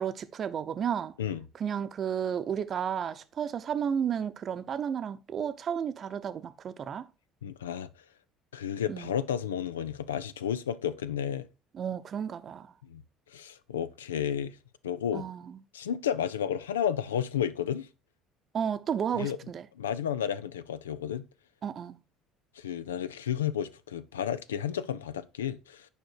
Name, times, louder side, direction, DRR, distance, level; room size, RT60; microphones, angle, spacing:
voice 1, 0.0-1.2 1.5-7.1 8.9-9.1 11.7-12.7 15.1-15.6 18.5-19.7 21.6-22.0, right 8 dB, 40° right, 0.8 m, -32 dB
voice 2, 7.4-7.9 8.5-11.5 12.8-13.0 13.3-14.6 14.8-15.3 15.7-17.9 19.1-19.4 19.8-21.3 22.6-25.9, left 9 dB, 80° left, 0.5 m, -32 dB
8.9 x 5.1 x 4.6 m
figure-of-eight pair, 60°, 0 cm